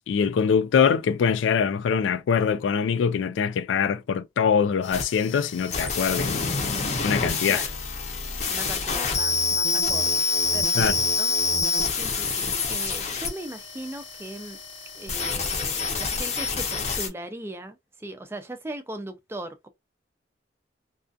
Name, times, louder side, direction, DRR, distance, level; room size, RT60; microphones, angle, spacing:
voice 1, 0.0-6.5 7.0-7.6 10.8-11.0, left 6 dB, 85° left, 0.3 m, -23 dB
sound 1, 4.8-17.1, left 4 dB, 35° left, 0.6 m, -27 dB
voice 2, 8.5-10.3 10.5-11.3 12.0-14.6 14.9-19.7, right 1 dB, 15° right, 0.3 m, -39 dB
2.3 x 2.3 x 2.5 m
head